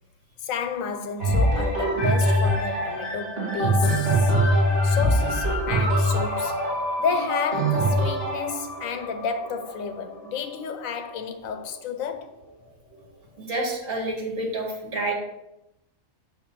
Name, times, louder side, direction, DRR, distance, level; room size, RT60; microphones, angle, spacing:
voice 1, 0.4-4.4 4.8-6.7 7.0-12.4, left 6 dB, 85° left, 1.1 m, -31 dB
sound 1, 1.2-11.0 11.6-11.7, equal, 30° right, 2.7 m, -24 dB
sound 2, 5.7-9.5, equal, 55° right, 1.2 m, -35 dB
voice 2, 13.4-15.1, right 2 dB, 70° right, 2.0 m, -28 dB
6.8 x 3.0 x 5.9 m
omnidirectional pair, 1.4 m